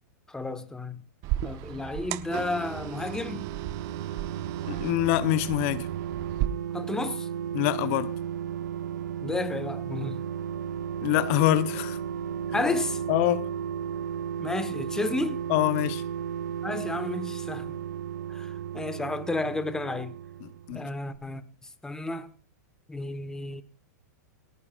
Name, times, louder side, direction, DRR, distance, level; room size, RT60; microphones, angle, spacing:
voice 1, 0.3-1.0 1.4-3.5 6.7-7.3 9.2-10.3 12.5-13.0 14.4-15.4 16.6-17.8 18.3-20.1 20.7-21.4 21.8-22.3 22.9-23.6, left 2 dB, 5° left, 1.3 m, -32 dB
sound 1, 1.2-6.5, right 15 dB, 40° right, 0.8 m, -35 dB
sound 2, 2.6-20.9 21.1-21.2, right 9 dB, 80° right, 0.9 m, -34 dB
voice 2, 4.7-5.9 7.5-8.1 11.0-12.0 13.1-13.5 15.5-16.0 20.7-20.9, left 15 dB, 50° left, 1.0 m, -25 dB
29.0 x 9.6 x 2.5 m
hypercardioid pair, 130°, 9 cm